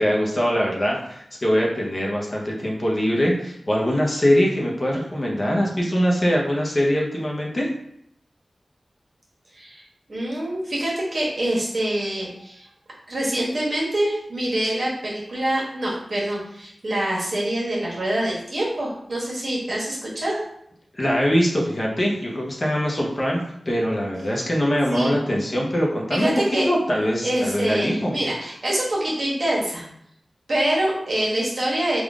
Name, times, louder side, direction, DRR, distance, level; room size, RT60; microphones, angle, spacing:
voice 1, 0.0-7.7 20.9-26.3 26.6-28.2, equal, 40° left, -2 dB, 0.8 m, -22 dB
voice 2, 9.5-9.8 10.1-12.7 13.1-20.4 24.9-25.2 26.1-26.6 27.2-29.8 30.5-32.0, right 1 dB, 55° right, -5 dB, 1.4 m, -25 dB
3.7 x 2.4 x 3.5 m, 0.72 s
wide cardioid pair, 95°, 0 cm